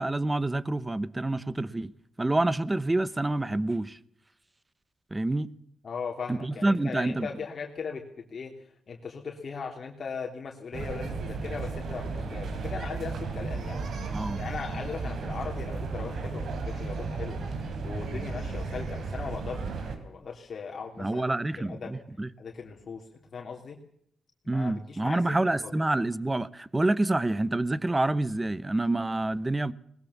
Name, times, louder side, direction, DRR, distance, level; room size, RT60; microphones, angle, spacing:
voice 1, 0.0-1.9 2.2-4.0 5.1-5.5 6.3-7.3 14.1-14.4 21.0-22.3 24.5-29.7, right 2 dB, 15° right, 0.9 m, -27 dB
voice 2, 5.8-22.0 22.4-23.8 24.5-25.4 25.6-25.7, left 5 dB, 50° left, 3.0 m, -39 dB
sound 1, 10.7-20.0, right 4 dB, 70° right, 4.1 m, -34 dB
21.0 x 20.5 x 7.2 m
cardioid pair, 95°, 0 cm